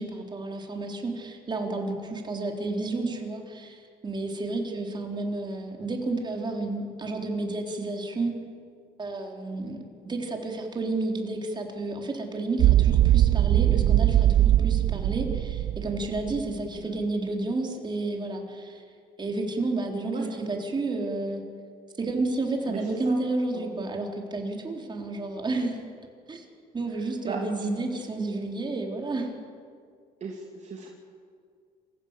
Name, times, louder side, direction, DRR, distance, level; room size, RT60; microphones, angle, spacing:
voice 1, 0.0-8.3 9.0-18.8 19.2-21.4 22.0-25.8 26.3-26.4 26.7-29.3, right 2 dB, 25° right, 2 dB, 4.0 m, -31 dB
sound 1, 12.6-16.5, right 13 dB, 55° right, 0.5 m, -21 dB
voice 2, 27.0-27.7 30.2-30.9, right 5 dB, 40° right, 0 dB, 2.8 m, -37 dB
27.5 x 15.5 x 8.4 m, 2.2 s
cardioid pair, 110°, 17 cm